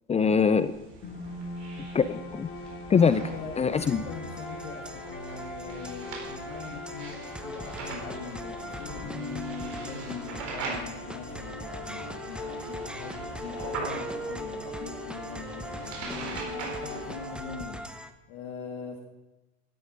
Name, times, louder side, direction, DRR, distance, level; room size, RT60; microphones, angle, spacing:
voice 1, 0.1-0.7 1.9-2.5 2.9-3.2 3.6-4.0, left 6 dB, 20° left, 14 dB, 0.5 m, -23 dB
sound 1, 0.6-17.5, right 4 dB, 55° right, 4.5 m, -42 dB
sound 2, 1.0-17.8, left 2 dB, 40° left, 2.6 m, -42 dB
voice 2, 3.2-17.9 18.3-19.0, left 5 dB, 60° left, 1 dB, 2.2 m, -42 dB
sound 3, 3.7-18.1, equal, 5° right, 1.0 m, -40 dB
12.0 x 9.4 x 5.3 m, 1.0 s
hypercardioid pair, 80°, 33 cm